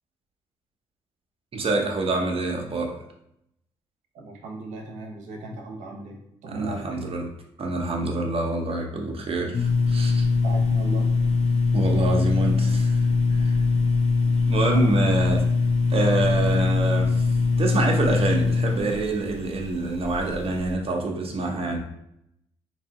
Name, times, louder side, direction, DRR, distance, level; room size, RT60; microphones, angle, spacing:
voice 1, 1.5-2.9 6.5-7.3 7.6-10.3 11.7-13.0 13.3-13.5 14.4-15.5 15.9-17.3 17.6-21.8, right 2 dB, 50° right, 1 dB, 1.0 m, -26 dB
voice 2, 4.1-6.9 10.4-11.1 14.4-14.5 14.7-14.9, right 2 dB, 80° right, 1 dB, 0.9 m, -36 dB
sound 1, 9.5-20.7, left 4 dB, 55° left, 0.8 m, -22 dB
3.3 x 2.8 x 4.2 m, 0.77 s
supercardioid pair, 55°, 13 cm